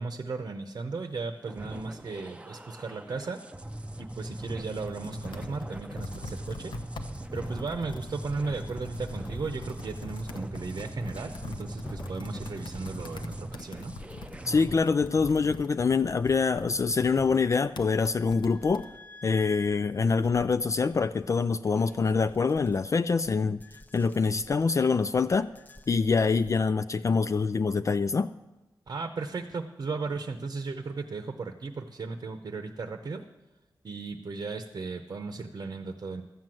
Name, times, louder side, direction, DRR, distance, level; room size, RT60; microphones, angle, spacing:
voice 1, 0.0-3.4 4.0-6.7 7.3-13.9 28.9-33.3 33.8-36.2, right 4 dB, 55° right, 0.8 m, -36 dB
sound 1, 1.4-14.7, right 1 dB, 15° right, 0.6 m, -40 dB
Computer keyboard, 4.4-18.9, left 3 dB, 80° left, 0.9 m, -44 dB
sound 2, 7.2-26.7, left 1 dB, 20° left, 0.7 m, -50 dB
voice 2, 14.5-18.9 19.2-23.6 23.9-25.5 25.9-28.3, left 4 dB, 40° left, 0.3 m, -25 dB
13.0 x 7.7 x 7.5 m
wide cardioid pair, 90°, 8 cm